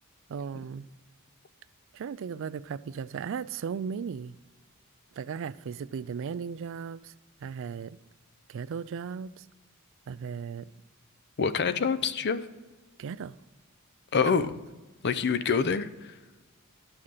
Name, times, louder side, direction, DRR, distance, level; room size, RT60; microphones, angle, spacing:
voice 1, 0.3-0.9 1.9-4.3 5.2-7.1 7.4-8.0 8.5-9.5 10.1-10.7 13.0-13.4, right 6 dB, 60° right, 0.3 m, -36 dB
voice 2, 11.4-12.4 14.1-14.5 15.0-16.1, left 5 dB, 50° left, 0.6 m, -26 dB
12.5 x 5.7 x 6.5 m
head